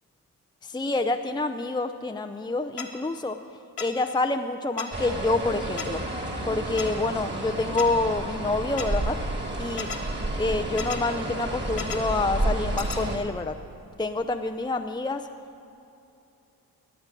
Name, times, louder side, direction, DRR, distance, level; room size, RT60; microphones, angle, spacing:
voice 1, 0.6-3.4 3.8-6.0 6.5-9.2 9.6-9.9 10.4-13.6 14.0-15.3, left 2 dB, 10° left, 5 dB, 0.6 m, -27 dB
sound 1, 2.8-2.9 3.8-3.9 4.8-4.9 5.8-5.9 6.8-6.9 7.8-7.9 8.8-8.9 9.8-10.0 10.8-11.0 11.8-12.0 12.8-13.0, left 7 dB, 70° left, 1.5 m, -33 dB
sound 2, 4.9-13.2, right 1 dB, 25° right, 2.4 m, -31 dB
14.5 x 8.8 x 6.8 m, 2.8 s
supercardioid pair, 45°, 41 cm